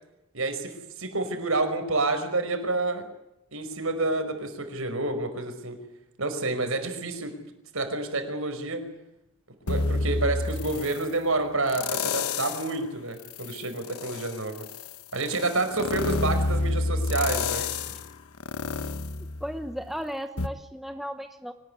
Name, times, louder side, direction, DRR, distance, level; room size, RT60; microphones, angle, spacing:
voice 1, 0.3-3.1 3.5-5.8 6.2-7.3 7.7-8.8 9.7-14.7 15.1-17.7, right 2 dB, 65° right, 6 dB, 5.2 m, -29 dB
sound 1, 9.7-11.1 11.7-12.8 13.2-19.9 20.4-20.5, left 3 dB, 85° left, 1.3 m, -29 dB
voice 2, 19.4-21.5, equal, ahead, 7 dB, 1.0 m, -35 dB
24.5 x 19.5 x 9.8 m, 0.88 s
head